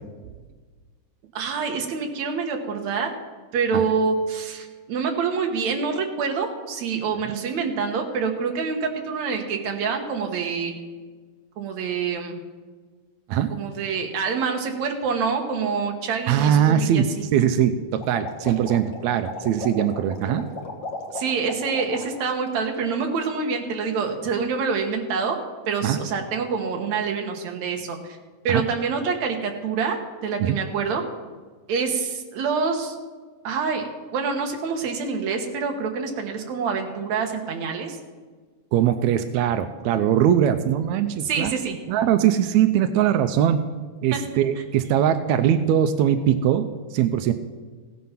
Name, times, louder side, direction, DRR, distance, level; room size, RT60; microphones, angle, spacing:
voice 1, 1.3-3.1 3.5-10.7 11.6-12.4 13.5-17.2 21.1-25.4 25.7-28.2 28.4-31.0 31.7-33.0 33.4-33.8 34.1-38.0 41.3-41.8 44.1-44.2, right 5 dB, 65° right, 3 dB, 2.5 m, -26 dB
voice 2, 16.3-20.5 25.8-26.0 28.5-28.6 30.4-30.6 38.7-41.6 41.9-43.6 44.0-47.3, right 10 dB, 80° right, 9 dB, 1.7 m, -21 dB
sound 1, 18.0-22.3 22.6-23.1, left 2 dB, 45° left, 1.6 m, -36 dB
16.5 x 9.4 x 5.8 m, 1.4 s
omnidirectional pair, 3.7 m